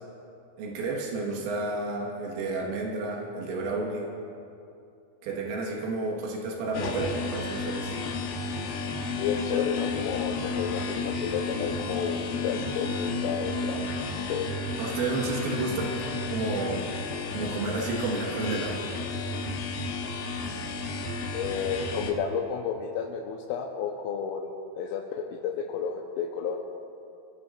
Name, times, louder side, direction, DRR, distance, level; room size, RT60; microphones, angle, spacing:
voice 1, 0.6-4.1 5.2-8.0 14.8-15.9 16.3-16.9 17.3-18.8, right 3 dB, 85° right, -2 dB, 4.1 m, -31 dB
sound 1, 6.7-22.1, left 3 dB, 65° left, 2.4 m, -32 dB
voice 2, 9.2-13.9 14.3-14.5 21.3-24.5 24.8-26.6, left 6 dB, 90° left, -1 dB, 3.4 m, -31 dB
24.5 x 16.5 x 2.5 m, 2.7 s
omnidirectional pair, 5.7 m